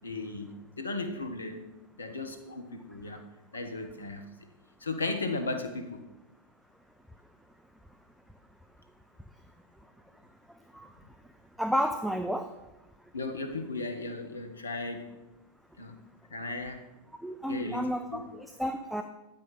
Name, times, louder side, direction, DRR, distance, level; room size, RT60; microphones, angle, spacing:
voice 1, 0.0-3.3 3.5-4.2 4.8-6.0 13.1-15.1 15.8-16.0 16.3-16.8 17.5-18.3, left 3 dB, 75° left, 7 dB, 0.8 m, -36 dB
voice 2, 11.6-12.5 17.2-19.0, equal, ahead, 6 dB, 0.4 m, -31 dB
8.9 x 5.0 x 4.2 m, 1.0 s
figure-of-eight pair, 90°, 0 cm